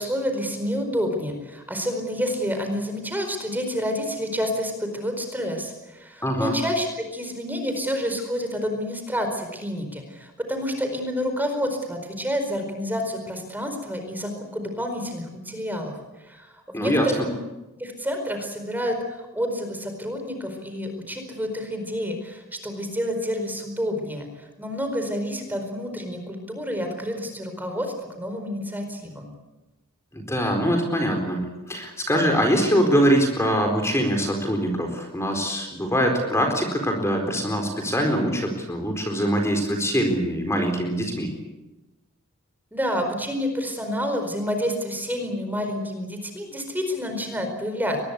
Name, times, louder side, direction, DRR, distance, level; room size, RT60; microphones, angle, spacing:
voice 1, 0.0-17.3 17.8-29.3 42.7-48.0, equal, 10° right, 5 dB, 4.6 m, -29 dB
voice 2, 6.2-6.5 16.7-17.0 30.1-31.4 31.7-41.3, equal, 15° left, 3 dB, 4.3 m, -23 dB
23.5 x 21.0 x 8.3 m, 1.1 s
head